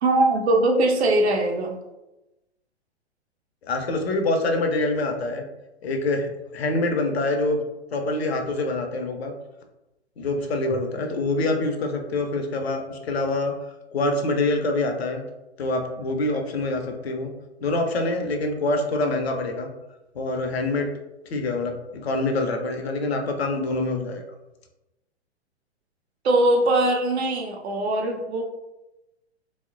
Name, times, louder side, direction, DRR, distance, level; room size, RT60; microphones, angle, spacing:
voice 1, 0.0-1.8 26.2-28.4, right 2 dB, 70° right, 2 dB, 0.5 m, -21 dB
voice 2, 3.6-5.4 5.8-7.6 7.9-9.3 10.2-13.5 13.9-15.2 15.6-17.3 17.6-19.7 20.1-20.9 21.3-24.2, left 2 dB, 65° left, 4 dB, 0.5 m, -25 dB
2.8 x 2.1 x 2.4 m, 0.97 s
figure-of-eight pair, 115°, 34 cm